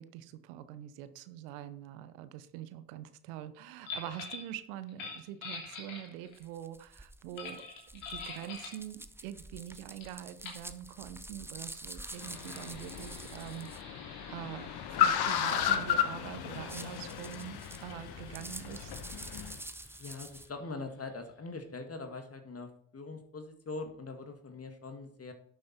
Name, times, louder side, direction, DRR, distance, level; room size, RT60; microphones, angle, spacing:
voice 1, 0.0-7.6 7.9-18.9, right 12 dB, 75° right, 13 dB, 0.9 m, -44 dB
sound 1, 3.8-4.5 4.9-6.4 7.4-8.8 10.0-10.1 10.4-10.7 11.7-21.0, left 4 dB, 80° left, 3.1 m, -47 dB
sound 2, 6.3-13.8 16.5-20.5, right 1 dB, 5° right, 0.9 m, -48 dB
Car, 12.2-19.6, left 9 dB, 60° left, 1.3 m, -34 dB
voice 2, 20.0-25.3, left 3 dB, 35° left, 6 dB, 1.9 m, -42 dB
11.5 x 7.5 x 4.4 m, 0.65 s
hypercardioid pair, 45°, 43 cm